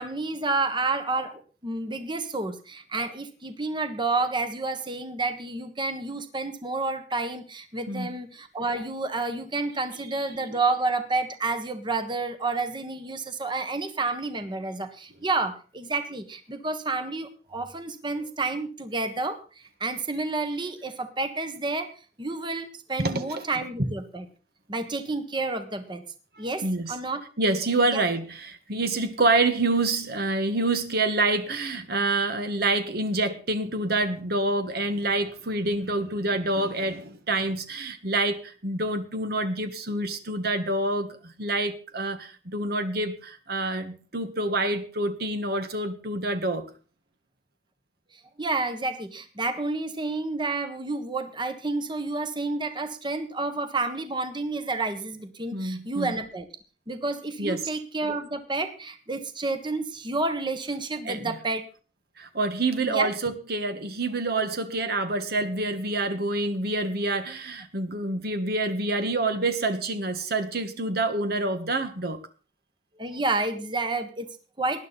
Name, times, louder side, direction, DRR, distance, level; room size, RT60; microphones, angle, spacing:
voice 1, 0.0-21.9 22.2-24.2 24.7-26.0 26.4-27.2 27.9-28.0 48.4-56.5 56.9-61.6 62.9-63.1 73.0-74.9, right 3 dB, 25° right, 1.4 m, -30 dB
voice 2, 10.0-10.6 23.0-23.4 23.8-23.9 26.6-26.9 27.4-46.7 55.5-56.1 57.4-57.6 61.0-61.3 62.2-72.2, right 2 dB, 60° right, 1.6 m, -27 dB
19.5 x 11.0 x 4.2 m
head